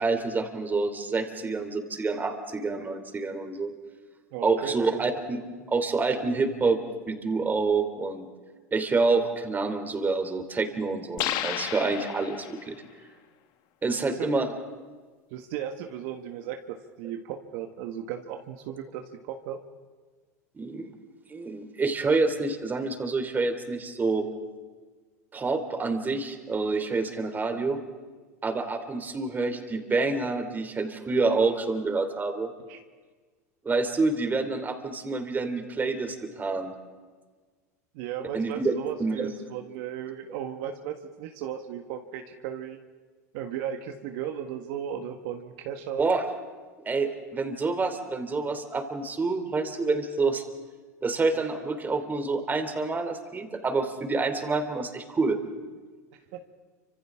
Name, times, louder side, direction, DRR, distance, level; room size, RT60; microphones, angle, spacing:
voice 1, 0.0-3.7 4.4-6.8 7.1-8.3 8.7-12.8 13.8-14.5 20.5-20.9 21.3-24.3 25.3-27.8 28.4-32.5 33.6-36.7 38.3-38.7 39.0-39.3 46.0-46.3 46.8-50.4 51.0-55.4, right 3 dB, 20° right, 7 dB, 3.0 m, -27 dB
voice 2, 4.3-5.0 13.9-14.3 15.3-19.6 32.7-32.8 37.9-42.8 43.3-46.0 56.3-56.4, right 9 dB, 60° right, 5 dB, 1.6 m, -36 dB
sound 1, 11.2-12.7, left 12 dB, 55° left, 1.5 m, -32 dB
29.5 x 25.5 x 3.7 m, 1.4 s
hypercardioid pair, 90°, 9 cm